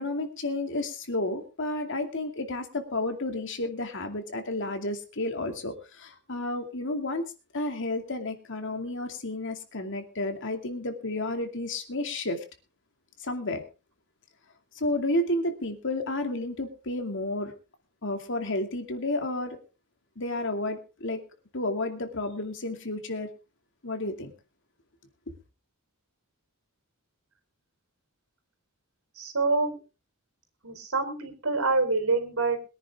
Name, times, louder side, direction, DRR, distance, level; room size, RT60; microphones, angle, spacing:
voice 1, 0.0-7.2 7.5-12.4 13.2-13.6 14.8-17.5 18.0-19.6 20.2-21.2 21.5-23.3 23.8-24.3, left 2 dB, 60° left, 5 dB, 2.5 m, -31 dB
voice 2, 29.2-29.8 30.6-32.7, right 3 dB, 80° right, 6 dB, 4.3 m, -26 dB
22.0 x 10.0 x 3.6 m, 0.32 s
head